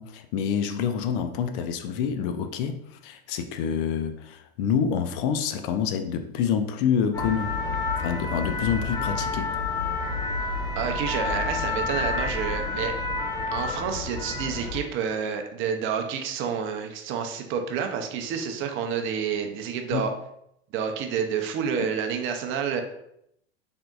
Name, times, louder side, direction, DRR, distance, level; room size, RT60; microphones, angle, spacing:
voice 1, 0.0-7.6 8.0-9.6 19.9-20.1, left 7 dB, 55° left, 0.4 m, -27 dB
sound 1, 7.1-14.8, left 3 dB, 10° left, 0.6 m, -29 dB
voice 2, 10.8-12.9 13.5-20.1 20.7-22.8, right 7 dB, 40° right, 0.5 m, -29 dB
3.6 x 3.4 x 2.3 m
hypercardioid pair, 95°, 33 cm